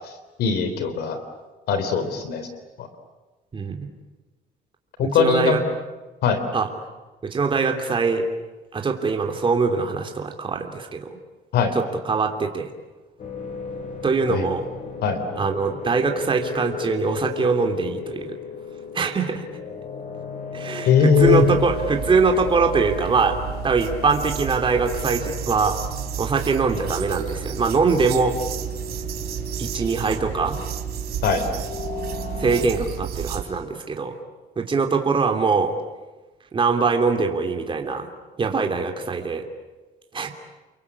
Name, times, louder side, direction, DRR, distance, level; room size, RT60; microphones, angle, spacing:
voice 1, 0.4-1.2 1.7-2.5 2.8-2.9 5.0-5.6 6.2-6.4 11.5-11.7 14.3-14.5 15.0-15.2 20.8-21.4 31.2-31.5, left 6 dB, 70° left, 9 dB, 3.5 m, -20 dB
voice 2, 3.5-3.9 5.0-5.6 6.5-6.7 7.2-8.3 8.7-11.1 11.7-12.7 14.0-14.7 15.4-18.4 18.9-19.4 20.5-23.4 23.6-25.8 26.2-28.4 29.6-30.6 32.4-34.2 34.6-35.7 36.5-38.1 38.4-39.4 40.1-40.3, right 4 dB, 30° right, 4 dB, 3.1 m, -22 dB
sound 1, 13.2-32.6, left 4 dB, 45° left, 7.2 m, -36 dB
sound 2, 21.2-33.4, right 9 dB, 70° right, 3.6 m, -32 dB
30.0 x 23.0 x 8.5 m, 1.2 s
cardioid pair, 110°, 17 cm